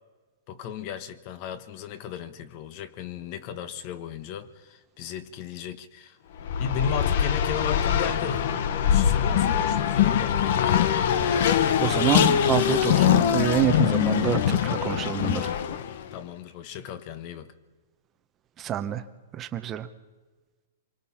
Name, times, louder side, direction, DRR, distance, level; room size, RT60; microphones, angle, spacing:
voice 1, 0.5-6.2 6.6-8.6 8.9-10.4 16.1-17.5, left 8 dB, 35° left, 1.4 m, -35 dB
Race car auto racing, 6.4-16.0, left 9 dB, 55° left, 1.3 m, -23 dB
voice 2, 11.3-15.5 18.6-19.0 19.3-19.9, right 11 dB, 20° right, 1.0 m, -27 dB
27.0 x 23.5 x 5.8 m
hypercardioid pair, 165°, 0 cm